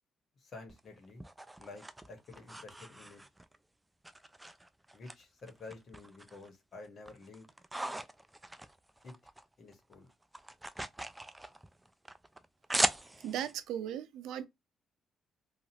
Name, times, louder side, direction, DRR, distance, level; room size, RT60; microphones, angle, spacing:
voice 1, 0.4-1.2 1.6-3.2 4.9-7.5 9.0-9.1 9.6-10.1, left 3 dB, 55° left, 1.2 m, -50 dB
sound 1, 0.7-3.6 4.0-5.1 5.5-6.5 6.8-9.4 9.7-13.5, right 1 dB, 10° right, 0.3 m, -39 dB
voice 2, 13.2-14.5, right 10 dB, 85° right, 0.5 m, -37 dB
2.8 x 2.4 x 2.8 m
cardioid pair, 90°, 0 cm